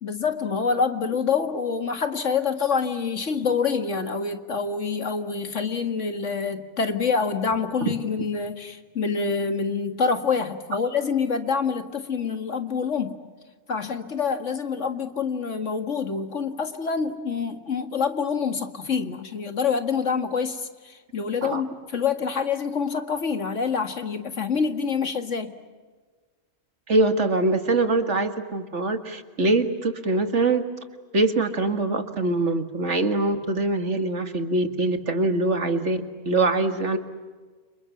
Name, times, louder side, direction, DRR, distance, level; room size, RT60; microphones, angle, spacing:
voice 1, 0.0-13.2 13.7-25.6, left 5 dB, 65° left, 7 dB, 2.2 m, -26 dB
voice 2, 26.9-30.6 31.1-36.0 36.3-37.0, right 2 dB, 65° right, 7 dB, 2.3 m, -23 dB
30.0 x 27.0 x 7.3 m, 1.4 s
omnidirectional pair, 1.3 m